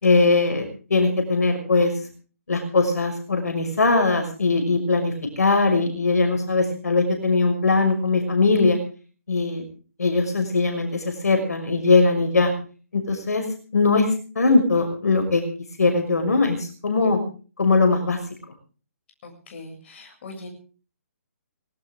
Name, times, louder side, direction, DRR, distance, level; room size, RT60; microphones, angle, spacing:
voice 1, 0.0-1.9 2.5-8.8 9.3-9.6 10.0-12.5 12.9-13.5 13.7-14.1 14.3-15.4 15.8-17.2 17.6-18.2, left 3 dB, 80° left, 4 dB, 6.1 m, -20 dB
voice 2, 19.2-20.5, left 2 dB, 45° left, 2 dB, 7.5 m, -41 dB
20.5 x 18.0 x 3.7 m, 0.39 s
hypercardioid pair, 145°, 8 cm